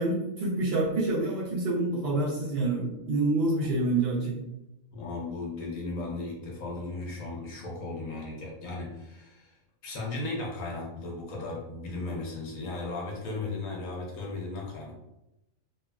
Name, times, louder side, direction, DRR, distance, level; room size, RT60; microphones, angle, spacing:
voice 1, 0.0-4.4, right 2 dB, 60° right, -4 dB, 0.7 m, -27 dB
voice 2, 4.9-9.6 9.8-14.9, left 2 dB, 75° left, -2 dB, 1.1 m, -36 dB
3.0 x 2.4 x 2.2 m, 0.90 s
omnidirectional pair, 1.4 m